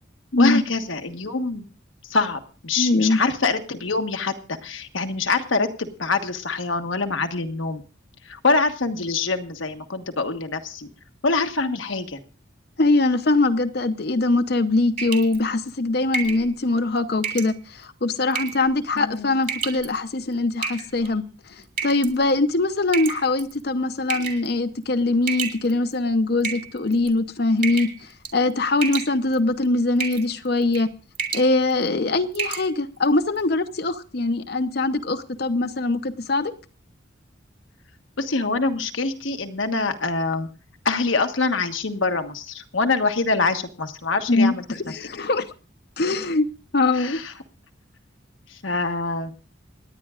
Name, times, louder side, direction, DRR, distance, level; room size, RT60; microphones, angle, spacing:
voice 1, 0.4-1.7 2.1-7.8 8.3-10.9 11.2-12.2 18.9-19.3 38.2-40.5 40.8-44.6 46.9-47.3 48.5-49.3, left 3 dB, 90° left, 1.3 m, -25 dB
voice 2, 2.8-3.2 12.8-21.2 21.8-27.9 28.3-30.9 31.3-36.5 44.3-45.5 46.0-46.5 46.7-47.2, left 2 dB, 55° left, 0.8 m, -22 dB
sound 1, 15.0-15.4 16.1-16.4 17.2-17.5 18.3-18.7 19.4-19.9 20.6-21.1 21.8-22.1 22.9-23.5 24.1-24.5 25.3-25.9 26.4-27.1 27.6-28.0 28.2-28.5 28.8-29.4 30.0-30.3 30.6-30.8 31.1-31.5 31.9-32.0 32.3-32.7, right 5 dB, 45° right, 2.5 m, -29 dB
27.5 x 9.9 x 2.5 m
head